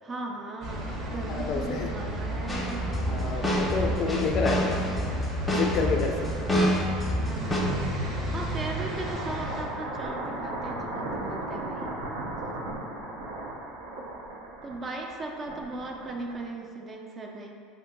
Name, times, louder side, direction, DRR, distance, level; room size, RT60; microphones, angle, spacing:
voice 1, 0.0-3.1 7.3-11.9 14.6-17.5, right 2 dB, 30° right, 1 dB, 0.4 m, -38 dB
sound 1, 0.6-9.6, right 1 dB, 55° right, 0.7 m, -33 dB
voice 2, 1.3-1.9 3.1-4.7 5.4-6.3, left 5 dB, 50° left, 3 dB, 0.3 m, -29 dB
sound 2, 2.5-7.6, equal, 15° left, 0.7 m, -27 dB
sound 3, 8.5-16.7, right 2 dB, 85° right, 0.5 m, -36 dB
2.7 x 2.6 x 3.8 m, 2.2 s
supercardioid pair, 95°, 0 cm